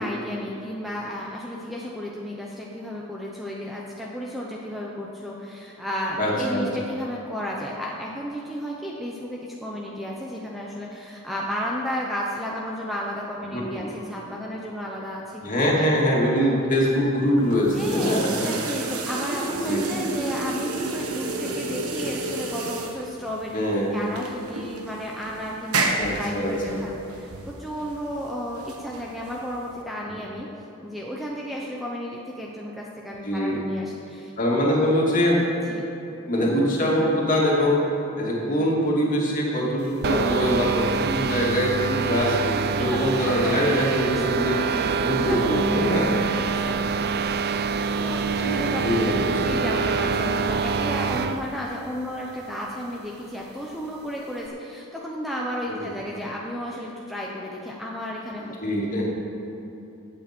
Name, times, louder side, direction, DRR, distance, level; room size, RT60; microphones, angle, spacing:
voice 1, 0.0-15.9 17.6-23.6 23.9-30.5 30.8-34.3 34.7-34.9 35.7-35.9 42.1-44.4 44.7-45.0 45.3-45.6 46.4-47.1 47.7-58.6, equal, ahead, -3 dB, 0.8 m, -33 dB
voice 2, 6.2-6.6 13.5-13.9 15.4-18.5 19.6-19.9 23.5-24.0 26.0-26.8 33.2-33.6 34.4-35.4 36.2-37.8 38.2-42.4 42.8-44.6 44.9-46.2 48.4-49.3 55.7-55.9 58.6-59.1, equal, 40° left, -4 dB, 2.4 m, -23 dB
sound 1, 17.4-29.8, right 2 dB, 90° right, 1.3 m, -31 dB
sound 2, 40.0-51.4, right 5 dB, 45° right, 0.4 m, -25 dB
15.5 x 8.6 x 4.5 m, 2.9 s
head